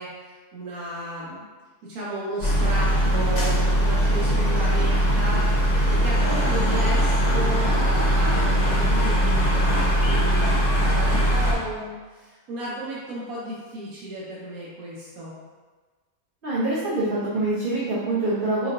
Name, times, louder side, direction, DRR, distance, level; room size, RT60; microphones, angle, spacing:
voice 1, 0.0-1.5 1.8-15.3, right 1 dB, 75° right, -7 dB, 1.2 m, -34 dB
sound 1, 2.4-11.5, equal, 40° left, 0.6 m, -21 dB
voice 2, 16.4-18.7, right 2 dB, 45° right, -8 dB, 0.8 m, -25 dB
5.1 x 3.0 x 2.5 m, 1.4 s
omnidirectional pair, 1.6 m